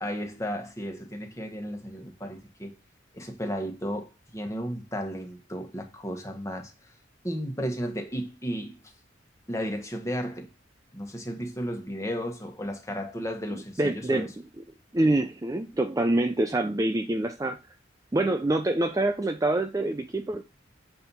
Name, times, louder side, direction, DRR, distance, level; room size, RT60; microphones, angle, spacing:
voice 1, 0.0-2.7 3.1-6.7 7.2-8.8 9.5-10.5 10.9-14.3, equal, 15° left, 1.3 m, -34 dB
voice 2, 13.5-14.3 14.6-14.7 14.9-17.6 18.1-20.4, right 2 dB, 15° right, 0.4 m, -26 dB
7.6 x 4.4 x 5.5 m
head